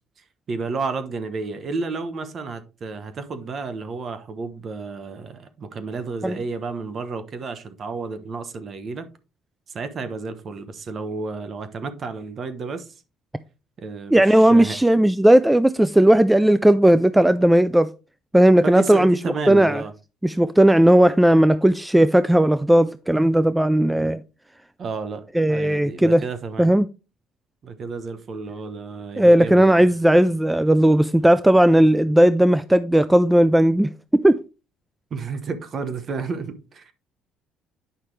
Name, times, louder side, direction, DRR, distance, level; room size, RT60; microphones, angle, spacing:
voice 1, 0.5-9.1 9.7-12.9 13.8-14.8 18.6-19.9 24.8-26.7 27.6-29.9 35.1-36.9, right 4 dB, 40° right, 1.1 m, -31 dB
voice 2, 14.1-17.9 18.3-19.1 19.5-19.8 20.2-24.2 25.4-26.2 26.6-26.9 29.2-34.4, right 1 dB, 5° right, 0.3 m, -16 dB
9.1 x 5.6 x 3.3 m
cardioid pair, 115°, 0 cm